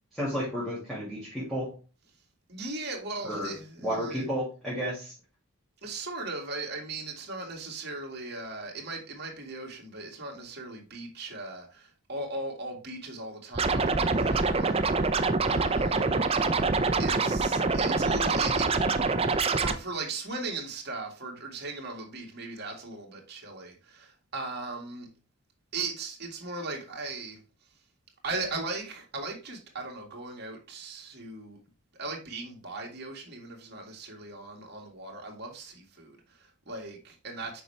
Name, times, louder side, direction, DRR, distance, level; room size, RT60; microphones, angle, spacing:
voice 1, 0.1-1.8 3.2-3.5 3.8-5.1 15.9-16.2, equal, ahead, 2.3 m, -32 dB
voice 2, 2.5-4.3 5.8-16.3 16.6-18.9 19.5-25.1 25.7-27.8 28.2-31.6 32.0-37.6, right 3 dB, 45° right, 2.0 m, -38 dB
Scratching (performance technique), 13.5-19.7, right 3 dB, 25° right, 0.5 m, -25 dB
6.7 x 5.4 x 3.3 m
head